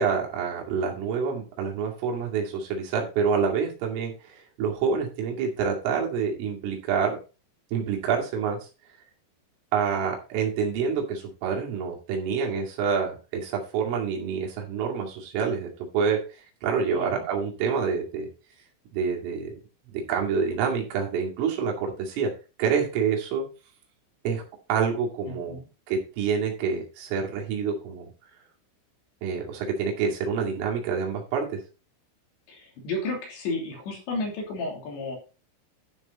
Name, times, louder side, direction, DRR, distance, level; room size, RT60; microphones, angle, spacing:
voice 1, 0.0-7.2 7.7-8.7 9.7-16.2 16.6-18.3 18.9-19.6 19.9-22.3 22.6-23.5 24.2-24.4 24.7-25.6 25.9-28.1 29.2-31.6, right 6 dB, 80° right, 0 dB, 4.9 m, -27 dB
voice 2, 16.9-17.3 25.5-25.7 32.5-35.2, left 2 dB, 65° left, 0 dB, 5.1 m, -32 dB
12.5 x 6.4 x 4.1 m, 0.32 s
omnidirectional pair, 5.7 m